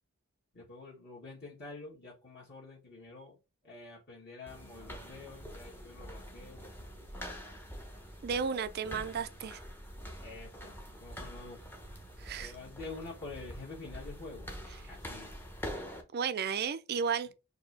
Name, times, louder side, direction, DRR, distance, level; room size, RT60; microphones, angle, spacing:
voice 1, 0.5-3.4 3.6-6.9 10.2-11.7 12.4-14.5 14.9-15.4, left 3 dB, 50° left, 1.8 m, -47 dB
sound 1, 4.5-16.0, equal, 10° left, 0.7 m, -45 dB
voice 2, 8.2-9.6 12.2-12.5 16.1-17.3, right 6 dB, 45° right, 0.4 m, -33 dB
4.5 x 2.7 x 3.3 m
head